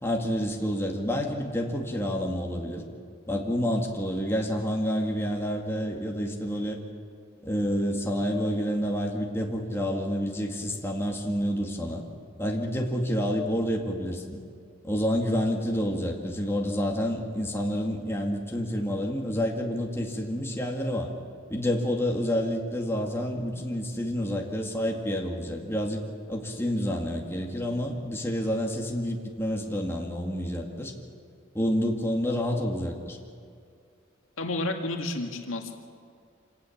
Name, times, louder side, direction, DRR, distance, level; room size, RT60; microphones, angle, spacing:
voice 1, 0.0-2.8 3.3-6.8 7.4-12.0 12.4-14.4 14.8-21.1 21.5-26.0 26.3-30.9 31.5-33.2, equal, 10° left, 0 dB, 2.2 m, -28 dB
voice 2, 34.4-35.7, left 2 dB, 80° left, 3 dB, 2.0 m, -31 dB
26.0 x 18.0 x 7.3 m, 2.3 s
head